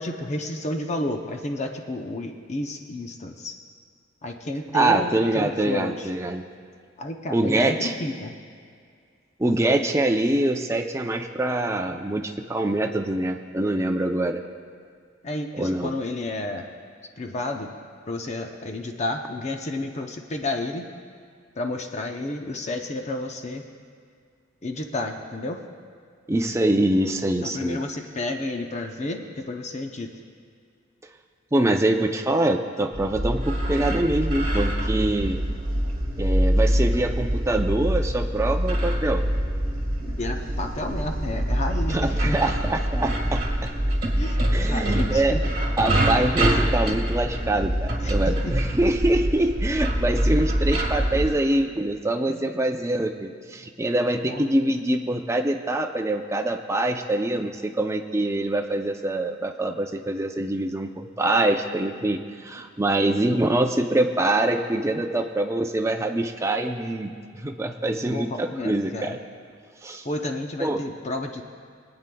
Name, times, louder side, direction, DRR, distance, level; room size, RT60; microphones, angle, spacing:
voice 1, 0.0-3.5 4.2-6.1 7.0-8.4 15.2-16.6 17.2-17.7 18.1-20.9 21.6-23.6 24.6-25.6 27.4-30.1 40.0-42.6 44.2-45.4 46.9-47.0 48.0-48.5 51.1-51.3 52.3-52.4 54.2-54.5 68.1-69.2 70.0-71.4, left 2 dB, 35° left, 3 dB, 0.6 m, -31 dB
voice 2, 4.7-6.4 7.3-7.9 9.4-14.4 15.6-15.9 26.3-27.8 31.5-35.4 36.2-39.2 41.9-43.7 44.5-45.4 45.8-69.2 69.8-70.0 70.6-70.8, right 1 dB, 15° right, 4 dB, 0.5 m, -24 dB
sound 1, 32.9-51.3, equal, 50° right, 1.6 m, -25 dB
24.5 x 8.9 x 2.3 m, 2.2 s
head